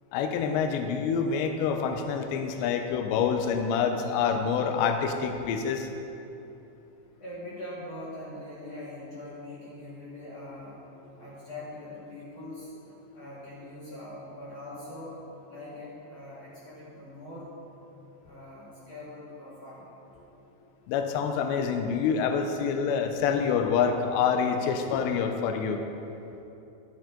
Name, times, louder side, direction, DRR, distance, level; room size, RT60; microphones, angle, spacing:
voice 1, 0.1-5.9 20.9-25.8, left 6 dB, 80° left, 6 dB, 2.7 m, -27 dB
voice 2, 7.2-10.9 11.2-12.7 13.1-15.2 15.5-17.5 18.2-19.9, left 1 dB, 40° left, -9 dB, 2.9 m, -42 dB
13.5 x 9.1 x 3.8 m, 2.9 s
omnidirectional pair, 5.5 m